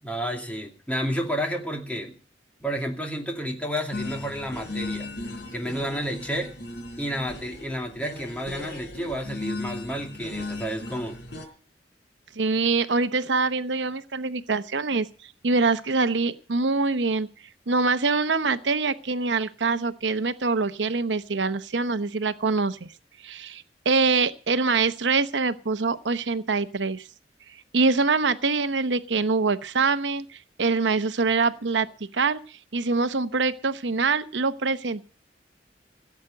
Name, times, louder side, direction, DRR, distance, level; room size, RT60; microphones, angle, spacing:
voice 1, 0.0-2.2 2.6-5.1 5.5-6.5 7.0-11.2, equal, 10° left, 2 dB, 2.5 m, -31 dB
sound 1, 3.9-11.5, left 2 dB, 70° left, 3.7 m, -37 dB
voice 2, 12.4-15.1 15.4-17.3 17.7-22.9 23.2-27.1 27.7-31.9 32.1-35.1, right 4 dB, 80° right, 11 dB, 0.8 m, -24 dB
17.0 x 8.1 x 7.8 m, 0.39 s
head